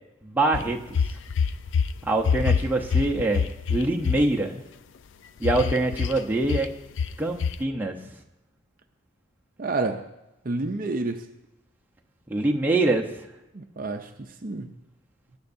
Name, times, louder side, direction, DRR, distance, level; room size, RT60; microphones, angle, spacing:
voice 1, 0.2-1.0 2.0-4.6 5.4-6.7 7.2-8.0 12.3-13.3, right 2 dB, 10° right, -1 dB, 0.8 m, -24 dB
sound 1, 0.5-1.9 2.2-4.2 5.4-6.2 6.4-6.6 7.0-7.2 7.4-7.5, left 6 dB, 65° left, 0.4 m, -24 dB
voice 2, 9.6-10.1 10.4-11.3 13.5-14.8, right 3 dB, 40° right, 6 dB, 0.5 m, -29 dB
19.0 x 9.6 x 2.7 m, 0.92 s
head